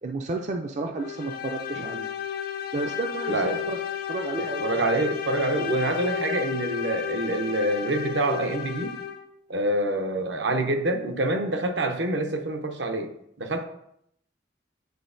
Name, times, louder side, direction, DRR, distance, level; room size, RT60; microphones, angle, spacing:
voice 1, 0.0-2.1 2.7-3.8 4.1-4.9 6.2-6.4, right 2 dB, 40° right, 4 dB, 0.4 m, -32 dB
sound 1, 1.0-9.3, left 8 dB, 50° left, 0.5 m, -32 dB
voice 2, 4.4-9.0 9.5-13.1 13.4-13.6, right 2 dB, 70° right, 5 dB, 0.8 m, -26 dB
9.2 x 4.2 x 2.6 m, 0.74 s
head